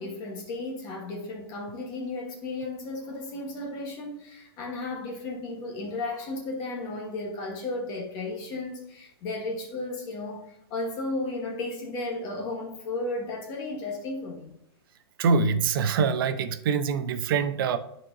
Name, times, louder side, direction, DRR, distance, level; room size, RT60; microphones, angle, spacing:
voice 1, 0.0-14.5, left 2 dB, 30° left, 1.2 m, -34 dB
voice 2, 15.2-17.8, right 5 dB, 55° right, 0.7 m, -24 dB
11.0 x 4.4 x 2.6 m
hypercardioid pair, 160°, 14 cm